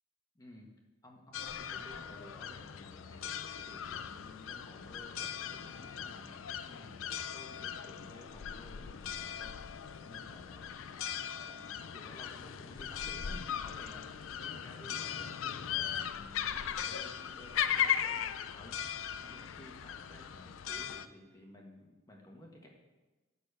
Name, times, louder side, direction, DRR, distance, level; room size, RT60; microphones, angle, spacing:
voice 1, 0.3-0.7 1.0-22.7, left 1 dB, 20° left, 0 dB, 1.5 m, -54 dB
sound 1, 1.3-21.1, left 9 dB, 75° left, 0.4 m, -38 dB
11.5 x 4.2 x 6.7 m, 1.2 s
head